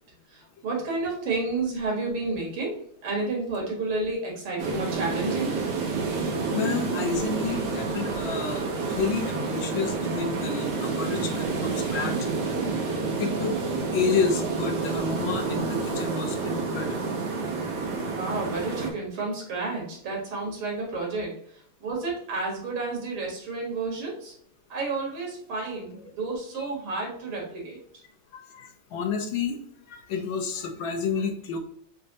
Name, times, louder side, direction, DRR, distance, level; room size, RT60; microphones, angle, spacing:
voice 1, 0.3-5.6 18.1-24.3 24.7-27.8, right 3 dB, 85° right, -2 dB, 2.7 m, -31 dB
sound 1, 4.6-18.9, right 4 dB, 60° right, 1.4 m, -29 dB
voice 2, 6.5-12.1 13.2-13.6 13.9-17.2 28.3-29.6 29.9-31.6, left 5 dB, 75° left, 4 dB, 1.6 m, -30 dB
6.7 x 2.6 x 2.8 m, 0.66 s
omnidirectional pair, 2.3 m